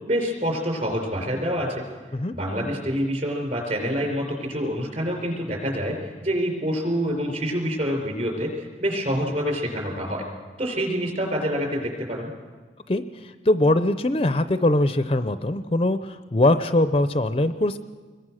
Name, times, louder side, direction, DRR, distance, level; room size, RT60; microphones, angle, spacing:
voice 1, 0.1-1.8 2.3-10.2 10.6-12.3, equal, 40° right, 2 dB, 5.4 m, -26 dB
voice 2, 12.9-17.8, left 1 dB, 30° left, 11 dB, 0.6 m, -22 dB
26.5 x 22.0 x 6.4 m, 1.4 s
head